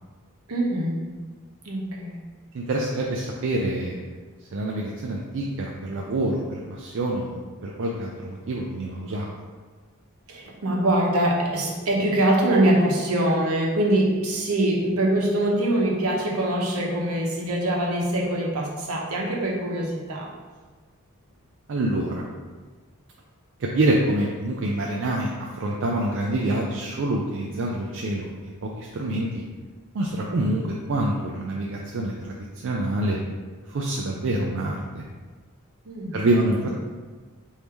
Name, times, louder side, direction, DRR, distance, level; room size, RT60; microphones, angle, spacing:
voice 1, 0.5-1.1 1.6-2.2 10.3-20.3 35.8-36.1, right 1 dB, 75° right, -2 dB, 0.9 m, -23 dB
voice 2, 2.5-4.0 4.5-6.4 6.7-9.3 21.7-22.3 23.6-28.3 28.6-29.4 29.9-33.2 33.7-35.1 36.1-36.8, right 1 dB, 60° right, -1 dB, 0.4 m, -26 dB
3.5 x 2.7 x 4.5 m, 1.4 s
head